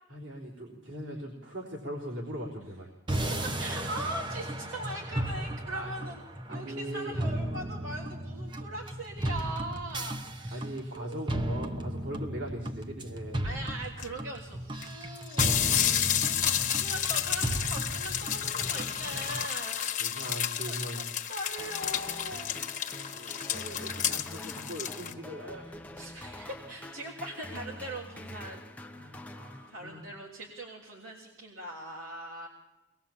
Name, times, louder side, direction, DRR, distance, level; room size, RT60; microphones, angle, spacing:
voice 1, 0.1-2.9 5.7-5.9 6.5-7.2 10.5-13.4 16.0-16.3 20.0-21.1 23.0-25.7 28.9-30.0, equal, 60° right, -2 dB, 3.7 m, -40 dB
sound 1, 3.1-19.4, right 1 dB, 25° right, 1.0 m, -35 dB
voice 2, 3.6-6.2 6.5-11.6 13.4-15.8 16.1-21.0 21.3-22.6 26.0-28.6 29.7-32.5, right 1 dB, 85° right, -2 dB, 3.4 m, -41 dB
sound 2, 14.0-14.1 14.8-14.9 15.2-25.1, left 10 dB, 40° left, 1.3 m, -31 dB
sound 3, 21.6-30.2, left 1 dB, 5° left, 0.7 m, -45 dB
23.5 x 20.5 x 7.3 m, 0.97 s
head